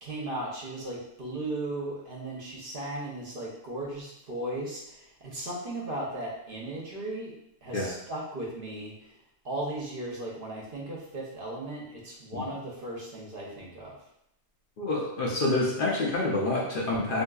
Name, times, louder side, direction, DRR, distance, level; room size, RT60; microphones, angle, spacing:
voice 1, 0.0-7.3 7.6-9.1 9.4-14.0, right 1 dB, 55° right, -3 dB, 0.9 m, -36 dB
voice 2, 14.8-17.2, left 2 dB, 55° left, -4 dB, 0.7 m, -27 dB
3.7 x 2.7 x 2.3 m, 0.79 s
omnidirectional pair, 1.2 m